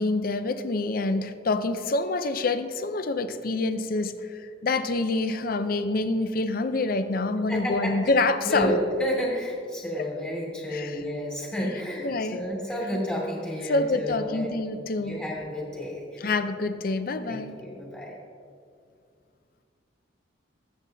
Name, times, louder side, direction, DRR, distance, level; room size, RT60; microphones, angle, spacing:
voice 1, 0.0-8.7 10.7-11.0 12.0-12.4 13.7-15.2 16.2-17.6, left 3 dB, 50° left, 10 dB, 0.5 m, -26 dB
voice 2, 7.5-8.1 8.4-14.6 15.0-16.3 17.2-18.2, equal, 10° left, -5 dB, 2.1 m, -31 dB
22.0 x 8.2 x 2.7 m, 2.3 s
head